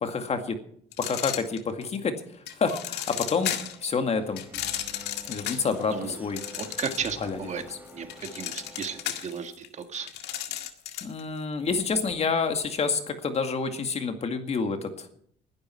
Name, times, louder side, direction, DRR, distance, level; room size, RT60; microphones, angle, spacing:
voice 1, 0.0-0.6 1.0-3.6 3.8-4.5 5.3-6.4 7.2-7.8 11.0-15.1, left 5 dB, 40° left, 7 dB, 2.1 m, -28 dB
sound 1, 0.9-2.0 2.5-3.8 4.4-7.3 7.6-11.2, left 11 dB, 85° left, 1.9 m, -34 dB
sound 2, 3.2-9.0, equal, 10° right, 4.4 m, -48 dB
voice 2, 6.6-7.6 7.9-10.1, right 6 dB, 45° right, 7 dB, 1.8 m, -34 dB
21.0 x 12.0 x 4.5 m, 0.65 s
cardioid pair, 110°, 17 cm